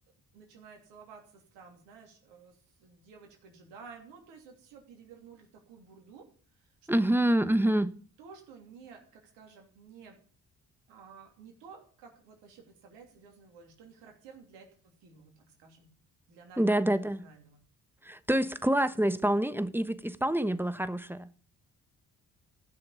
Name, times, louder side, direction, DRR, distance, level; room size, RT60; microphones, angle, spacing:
voice 1, 0.3-7.0 8.2-10.2 10.9-15.9 16.3-17.6, right 5 dB, 80° right, 3.1 m, -53 dB
voice 2, 6.9-7.9 16.6-17.2 18.0-21.4, right 1 dB, 5° right, 1.1 m, -27 dB
15.0 x 6.5 x 7.3 m
hypercardioid pair, 40°, 42 cm